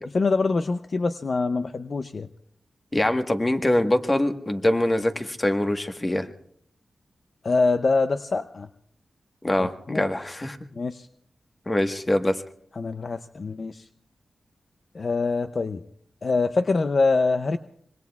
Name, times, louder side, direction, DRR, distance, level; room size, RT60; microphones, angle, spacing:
voice 1, 0.1-2.3 7.4-8.7 9.6-10.1 10.7-11.1 12.8-13.9 14.9-15.8 16.2-17.6, left 3 dB, 55° left, 10 dB, 0.5 m, -24 dB
voice 2, 2.9-6.3 9.4-10.6 11.7-12.4, left 1 dB, 25° left, 6 dB, 1.3 m, -23 dB
25.5 x 23.0 x 2.4 m, 0.69 s
cardioid pair, 70°, 0 cm